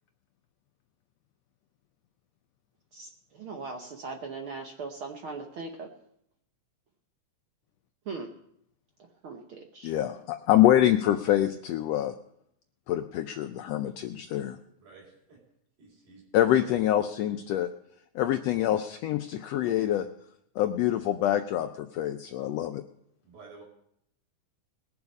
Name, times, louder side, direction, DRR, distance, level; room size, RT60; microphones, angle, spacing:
voice 1, 2.9-5.9 8.1-8.3 9.2-9.9, right 4 dB, 65° right, 3 dB, 1.3 m, -39 dB
voice 2, 9.8-12.1 12.9-14.6 16.3-17.7 18.1-20.1 20.6-22.8, left 12 dB, 90° left, 8 dB, 1.4 m, -25 dB
voice 3, 14.8-15.4 15.8-16.7 23.2-23.6, right 4 dB, 90° right, -5 dB, 5.4 m, -52 dB
20.5 x 7.2 x 5.3 m, 0.73 s
omnidirectional pair, 3.6 m